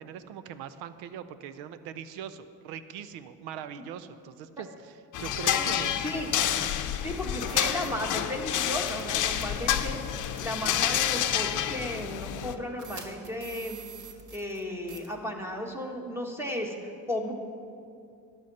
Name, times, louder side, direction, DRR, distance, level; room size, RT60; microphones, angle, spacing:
voice 1, 0.0-6.0, right 8 dB, 85° right, 13 dB, 0.7 m, -41 dB
sound 1, 5.1-12.6, left 10 dB, 55° left, 0.7 m, -29 dB
voice 2, 6.0-6.5 7.0-13.8 14.3-17.3, left 1 dB, 5° right, 1 dB, 1.7 m, -35 dB
sound 2, 6.7-6.8 7.4-7.9 8.9-9.1 9.4-9.5 10.4-10.5 11.2-11.3 12.8-14.6 14.9-15.1, right 7 dB, 55° right, 1.7 m, -45 dB
12.5 x 9.9 x 4.3 m, 2.4 s
supercardioid pair, 80°, 37 cm